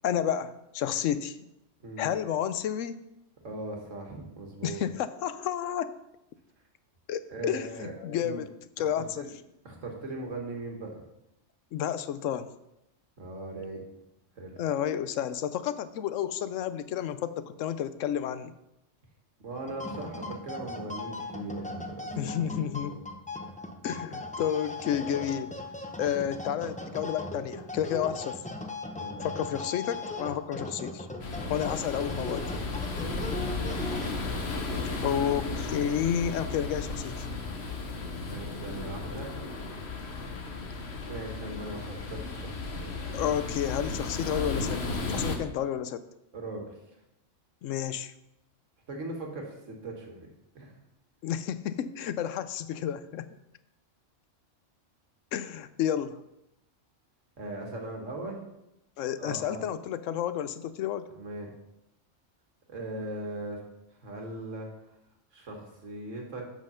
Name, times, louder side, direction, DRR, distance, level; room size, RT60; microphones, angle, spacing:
voice 1, 0.0-1.4 2.0-3.0 4.6-5.9 7.1-8.5 8.8-9.3 11.7-12.5 14.6-18.5 22.2-23.0 23.8-25.5 26.0-28.4 29.2-31.1 31.5-32.5 35.0-37.3 43.1-44.8 45.1-46.0 47.6-48.1 51.2-53.3 55.3-56.2 59.0-61.1, left 9 dB, 85° left, 13 dB, 1.0 m, -31 dB
voice 2, 1.8-2.1 3.4-4.8 7.3-8.4 8.8-9.3 9.6-11.0 13.2-13.8 14.4-14.6 19.4-22.5 22.8-23.0 29.0-29.4 31.4-32.0 33.1-33.7 38.3-39.3 41.0-42.9 46.3-46.8 48.9-50.3 50.6-50.7 57.4-58.4 59.2-59.6 61.2-61.5 62.7-63.6 64.0-64.7 65.3-66.4, right 2 dB, 80° right, 1 dB, 2.0 m, -39 dB
sound 1, 19.6-34.5, left 2 dB, 10° left, 0.4 m, -38 dB
sound 2, 31.2-45.4, left 3 dB, 60° left, 1.3 m, -34 dB
7.6 x 6.0 x 5.7 m, 0.88 s
omnidirectional pair, 1.3 m